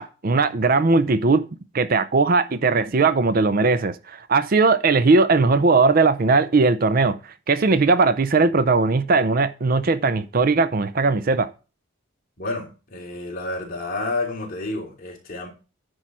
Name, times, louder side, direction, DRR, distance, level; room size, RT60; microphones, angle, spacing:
voice 1, 0.0-1.4 1.7-7.2 7.5-11.5, right 3 dB, 45° right, 0.5 m, -19 dB
voice 2, 12.4-15.5, left 2 dB, 40° left, 3.2 m, -30 dB
10.0 x 4.7 x 6.1 m
head